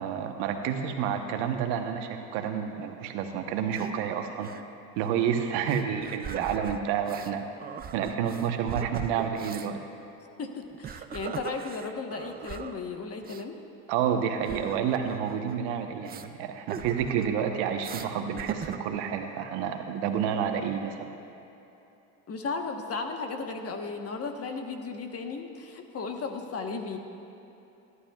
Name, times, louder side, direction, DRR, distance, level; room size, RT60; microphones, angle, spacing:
voice 1, 0.0-4.5 5.0-7.4 7.9-9.8 13.9-21.1, right 8 dB, 70° right, 5 dB, 1.1 m, -29 dB
sound 1, 3.6-3.9 4.4-4.6 5.0-5.1 5.7-7.3 7.6-9.7 10.6-12.8 13.2-13.4 14.4-15.6 16.1-16.3 16.7-17.3 17.8-18.1 18.4-19.0, right 7 dB, 20° right, 0.4 m, -40 dB
voice 2, 10.4-13.6 22.3-27.0, left 4 dB, 35° left, 4 dB, 1.3 m, -35 dB
19.5 x 11.5 x 2.4 m, 2.9 s
supercardioid pair, 95°, 43 cm